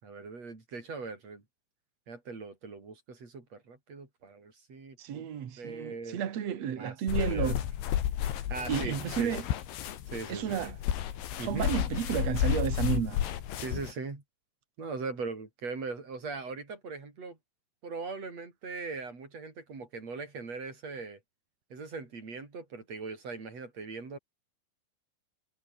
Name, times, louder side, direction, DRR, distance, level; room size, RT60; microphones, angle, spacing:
voice 1, 0.0-1.4 2.1-5.3 5.6-6.2 6.8-7.6 8.3-9.3 10.1-10.6 11.4-11.7 13.6-14.2 14.8-17.4 17.8-21.2 21.7-24.2, right 4 dB, 30° right, 6.2 m, -40 dB
voice 2, 5.0-7.6 8.7-9.4 10.3-10.8 11.4-13.2, right 9 dB, 60° right, 1.7 m, -32 dB
sound 1, 7.1-13.9, left 11 dB, 65° left, 4.3 m, -32 dB
omnidirectional pair, 6.0 m